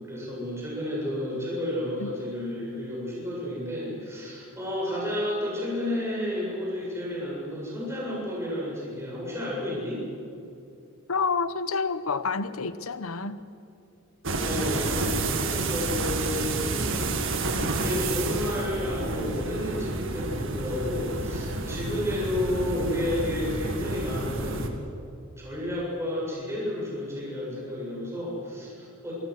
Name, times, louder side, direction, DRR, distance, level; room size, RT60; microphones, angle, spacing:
voice 1, 0.0-10.0 14.4-17.3 17.7-24.7 25.4-29.1, left 1 dB, 15° right, -5 dB, 7.7 m, -31 dB
voice 2, 11.1-13.4, left 4 dB, 90° left, 14 dB, 1.0 m, -28 dB
sound 1, 14.2-24.7, right 3 dB, 65° right, 1.9 m, -30 dB
25.5 x 18.0 x 6.6 m, 2.5 s
head